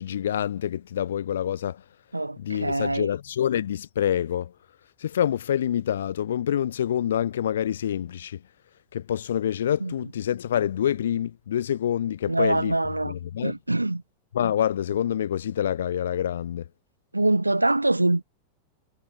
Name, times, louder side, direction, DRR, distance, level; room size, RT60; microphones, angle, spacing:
voice 1, 0.0-1.8 2.4-4.5 5.0-8.4 8.9-12.8 13.0-13.5 14.3-16.6, left 10 dB, 65° left, 3.5 m, -26 dB
voice 2, 2.1-3.1 9.8-9.9 12.3-13.1 13.4-14.0 17.1-18.2, right 2 dB, 85° right, 2.5 m, -24 dB
figure-of-eight pair, 90°, 0 cm